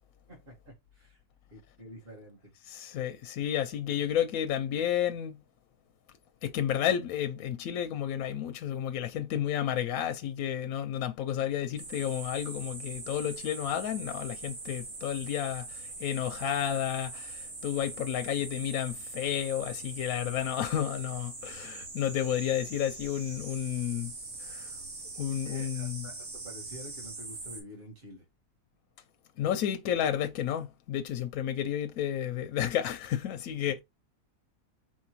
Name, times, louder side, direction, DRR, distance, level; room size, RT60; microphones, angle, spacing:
voice 1, 0.3-1.2 1.5-2.5 25.4-28.2, equal, 35° right, 1.7 m, -49 dB
voice 2, 2.7-5.4 6.4-24.1 24.4-24.8 25.1-26.0 29.4-33.8, left 10 dB, 70° left, 0.9 m, -31 dB
sound 1, 11.8-27.6, right 3 dB, 70° right, 2.1 m, -42 dB
4.4 x 3.6 x 3.0 m
omnidirectional pair, 1.7 m